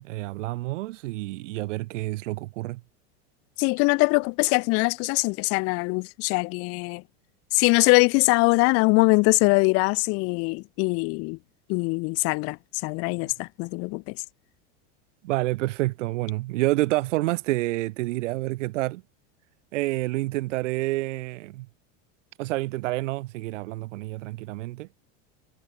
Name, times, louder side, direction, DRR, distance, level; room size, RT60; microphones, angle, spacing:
voice 1, 0.0-2.8 15.2-19.0 19.7-21.7 22.4-24.9, right 19 dB, 80° right, 1.4 m, -28 dB
voice 2, 3.6-7.0 7.5-11.4 11.7-12.6 12.8-14.1, left 28 dB, 40° left, 0.5 m, -22 dB
supercardioid pair, 145°, 36 cm